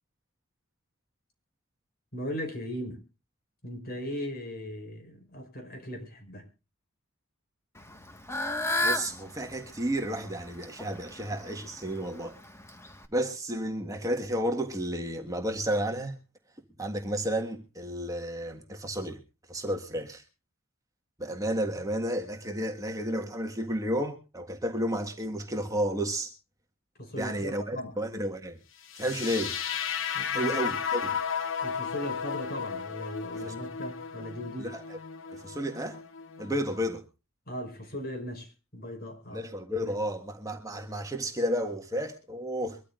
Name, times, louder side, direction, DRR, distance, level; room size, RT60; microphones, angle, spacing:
voice 1, 2.1-3.0 3.6-6.5 27.0-28.0 30.1-30.6 31.6-34.7 37.5-39.4 39.8-39.9, equal, 50° left, 5.3 m, -38 dB
Fowl / Bird, 7.8-13.1, left 1 dB, 15° left, 1.5 m, -34 dB
voice 2, 8.8-12.4 13.1-16.2 16.8-19.2 19.5-20.2 21.2-26.3 27.2-28.6 28.9-29.6 30.3-31.2 33.3-33.5 34.6-35.0 35.3-36.0 36.4-37.0 39.3-42.8, equal, 15° right, 1.6 m, -32 dB
sound 1, 28.9-36.9, left 7 dB, 65° left, 1.2 m, -34 dB
23.5 x 13.5 x 2.5 m
head